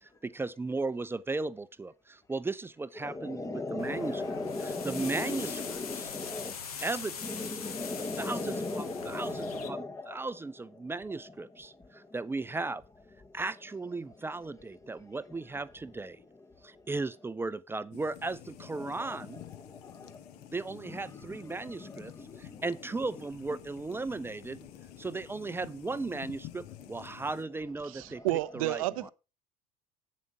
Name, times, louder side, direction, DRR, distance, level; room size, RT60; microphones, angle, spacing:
voice 1, 0.0-6.1 6.8-7.3 8.1-12.8 13.3-16.2 16.6-19.4 20.5-24.7 25.0-28.2 28.5-29.1, right 3 dB, 10° right, 0.4 m, -36 dB
voice 2, 3.0-6.5 7.2-10.2 11.9-12.1 18.8-19.2 19.6-20.5 20.9-22.6 28.2-28.3, left 2 dB, 15° left, 0.8 m, -38 dB
sound 1, 3.8-9.7, left 6 dB, 80° left, 1.1 m, -42 dB
sound 2, 17.9-27.4, left 14 dB, 60° left, 0.8 m, -50 dB
voice 3, 27.8-29.1, right 16 dB, 70° right, 0.5 m, -31 dB
8.5 x 7.1 x 4.8 m
hypercardioid pair, 70°, 19 cm